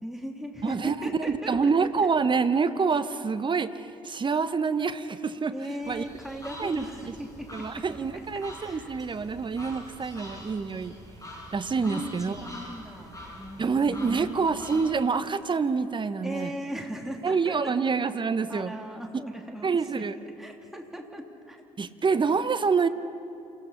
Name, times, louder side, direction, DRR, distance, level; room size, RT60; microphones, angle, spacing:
voice 1, 0.0-1.7 5.5-7.8 8.1-8.2 8.6-8.9 11.8-14.4 16.2-17.7 18.5-19.7 19.9-20.1 20.4-21.6, equal, ahead, 1 dB, 2.9 m, -38 dB
voice 2, 0.6-5.5 5.9-6.0 6.6-7.2 7.5-11.0 11.5-12.4 13.6-16.5 17.2-18.7 19.6-20.2 21.8-22.9, right 5 dB, 25° right, 12 dB, 1.0 m, -27 dB
sound 1, 5.8-14.8, left 1 dB, 20° left, 6.8 m, -45 dB
28.0 x 16.5 x 5.7 m, 2.7 s
figure-of-eight pair, 50°, 18 cm